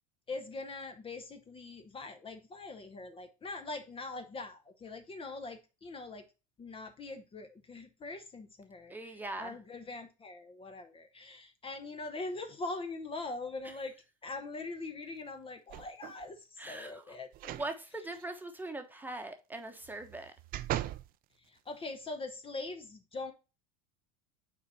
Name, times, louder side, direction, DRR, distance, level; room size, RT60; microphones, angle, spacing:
voice 1, 0.3-6.2 6.6-14.0 14.2-17.6 21.4-23.3, left 3 dB, 25° left, 1.0 m, -42 dB
voice 2, 8.9-9.6 13.6-13.7 16.6-17.2 17.5-20.3, right 2 dB, 10° right, 1.2 m, -41 dB
sound 1, 15.7-16.2 17.3-17.7 18.1-18.2 19.8-21.1 21.7-21.8, right 13 dB, 45° right, 0.6 m, -38 dB
6.5 x 4.2 x 4.1 m
hypercardioid pair, 95°, 21 cm